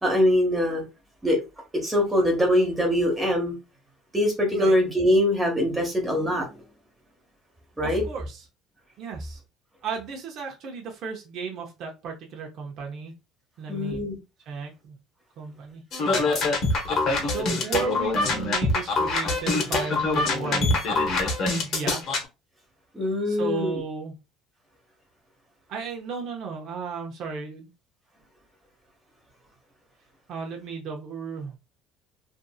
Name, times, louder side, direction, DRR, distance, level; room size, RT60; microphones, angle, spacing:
voice 1, 0.0-0.8 1.2-1.4 1.8-3.5 4.1-6.5 7.8-8.0 13.7-14.2 22.9-23.8, left 1 dB, 10° right, 1.0 m, -23 dB
voice 2, 7.8-8.4 9.0-9.4 9.8-13.1 13.6-14.0 14.5-15.0 15.4-15.8 17.3-20.9 21.4-22.1 23.3-24.2 25.7-27.7 30.3-31.6, right 5 dB, 50° right, 0.7 m, -34 dB
sound 1, 15.9-22.2, left 3 dB, 45° left, 0.9 m, -24 dB
2.6 x 2.6 x 2.3 m
cardioid pair, 145°, 0 cm